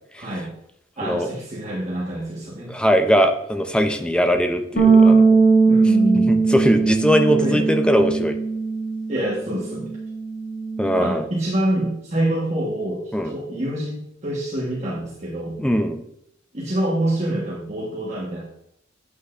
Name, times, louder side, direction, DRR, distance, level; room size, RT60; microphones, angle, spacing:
voice 1, 0.2-0.5 1.0-2.7 5.7-6.4 7.3-7.6 9.1-10.0 11.0-15.6 16.5-18.4, right 1 dB, 35° right, -5 dB, 1.4 m, -26 dB
voice 2, 2.7-5.4 6.3-8.4 10.8-11.3 13.1-13.3 15.6-16.0, equal, 5° left, 6 dB, 0.6 m, -20 dB
Bass guitar, 4.8-11.0, right 4 dB, 60° left, 2.4 m, -19 dB
8.2 x 8.0 x 2.5 m, 0.76 s
head